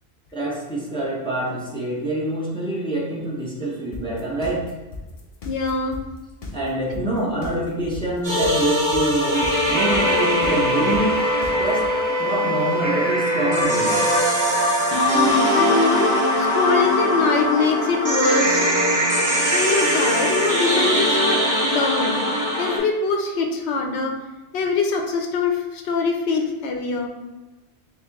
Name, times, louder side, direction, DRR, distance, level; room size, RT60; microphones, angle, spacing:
voice 1, 0.3-4.7 6.5-11.2 11.6-11.9 12.2-14.0, right 1 dB, 5° left, -5 dB, 0.7 m, -26 dB
sound 1, 3.9-11.9, left 3 dB, 45° left, 0.5 m, -35 dB
voice 2, 5.4-6.0 6.9-7.0 7.4-7.5 15.1-16.1 16.4-18.7 19.5-22.2 22.6-24.1 24.5-27.1, left 4 dB, 85° left, 2 dB, 0.9 m, -23 dB
sound 2, 8.2-22.8, equal, 20° right, 1.1 m, -21 dB
Wind instrument woodwind instrument, 9.7-14.3, equal, 65° right, 0.9 m, -24 dB
3.3 x 3.1 x 3.4 m, 1.1 s
omnidirectional pair, 1.1 m